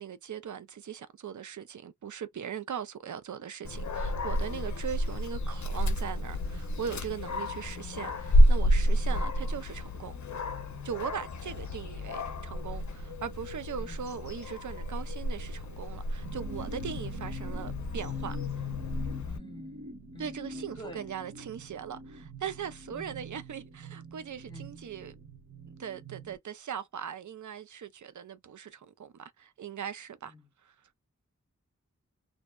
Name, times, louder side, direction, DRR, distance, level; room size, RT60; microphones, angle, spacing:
voice 1, 0.0-10.2 10.8-18.4 20.2-25.1 25.8-30.3 30.6-30.7, right 8 dB, 75° right, 0.5 m, -40 dB
Dog, 3.6-19.4, equal, 70° left, 0.5 m, -30 dB
voice 2, 9.1-9.4 13.8-14.0 16.9-17.1 19.2-21.1 22.9-23.2 24.5-24.7 30.3-30.5, left 1 dB, 15° left, 0.8 m, -48 dB
sound 1, 16.2-26.4, right 2 dB, 45° right, 0.9 m, -46 dB
2.7 x 2.1 x 2.2 m
wide cardioid pair, 50°, 30 cm